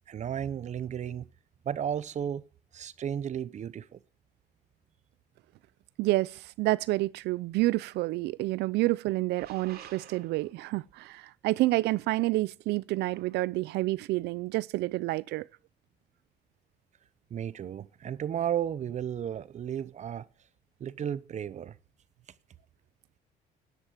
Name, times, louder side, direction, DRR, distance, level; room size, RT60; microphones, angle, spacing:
voice 1, 0.1-1.3 1.6-2.4 2.7-4.0 17.3-20.3 20.8-21.8, right 9 dB, 45° right, 0.8 m, -33 dB
voice 2, 6.0-15.5, right 19 dB, 80° right, 0.6 m, -29 dB
sound 1, 9.4-10.7 13.1-13.5, right 9 dB, 65° right, 3.0 m, -50 dB
11.0 x 10.0 x 7.5 m
cardioid pair, 110°, 17 cm